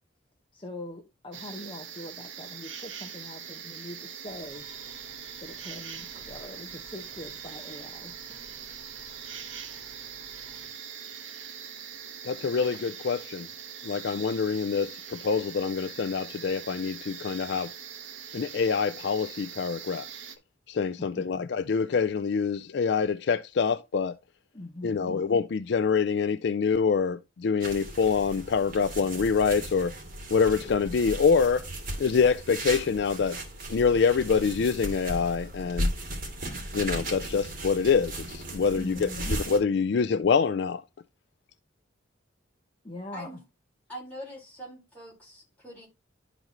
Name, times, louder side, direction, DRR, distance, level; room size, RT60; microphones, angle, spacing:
voice 1, 0.5-4.6 5.4-8.1 21.0-21.5 24.5-25.2 38.7-39.4 42.8-43.4, left 1 dB, 25° left, 0.9 m, -42 dB
sound 1, 1.3-20.4, right 8 dB, 80° right, 1.1 m, -42 dB
sound 2, 4.2-10.7, right 1 dB, 30° right, 2.4 m, -54 dB
voice 2, 12.2-13.5 13.8-17.7 18.3-20.1 20.7-24.2 24.8-29.9 30.3-31.7 32.0-33.4 33.7-35.9 36.7-39.1 39.5-40.8, left 5 dB, 60° left, 0.4 m, -25 dB
sound 3, 27.6-39.6, right 1 dB, 45° right, 2.4 m, -36 dB
voice 3, 43.9-45.9, equal, 10° left, 4.3 m, -43 dB
12.0 x 4.0 x 2.9 m
head